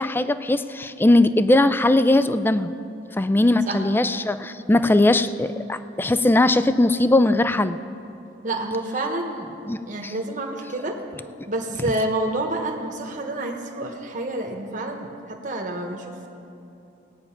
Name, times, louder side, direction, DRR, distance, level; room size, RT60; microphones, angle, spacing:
voice 1, 0.0-2.7 3.2-7.8 9.7-10.1, left 2 dB, 10° left, 12 dB, 0.3 m, -19 dB
voice 2, 8.4-9.5 9.9-11.0 11.5-16.3, right 2 dB, 45° right, 2 dB, 1.1 m, -28 dB
17.5 x 9.0 x 5.8 m, 2.7 s
head